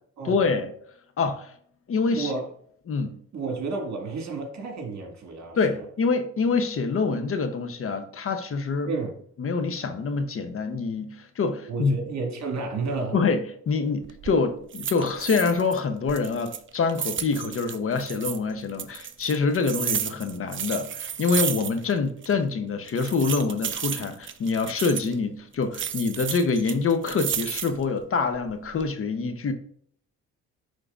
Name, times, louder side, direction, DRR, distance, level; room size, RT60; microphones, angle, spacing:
voice 1, 0.2-0.7 1.2-1.5 1.9-2.3 2.9-3.1 5.6-8.9 9.4-12.0 13.1-29.5, left 4 dB, 45° left, 0.9 m, -26 dB
voice 2, 2.1-2.5 3.3-5.8 8.9-9.2 11.7-13.2, right 4 dB, 65° right, 2.0 m, -31 dB
sound 1, 14.0-14.4 14.7-15.8 16.1-18.4 18.8-22.0 22.2-22.3 22.9-25.1 25.7-27.9 28.4-28.9, right 9 dB, 40° right, 0.5 m, -32 dB
10.0 x 3.8 x 2.5 m
cardioid pair, 90°, 30 cm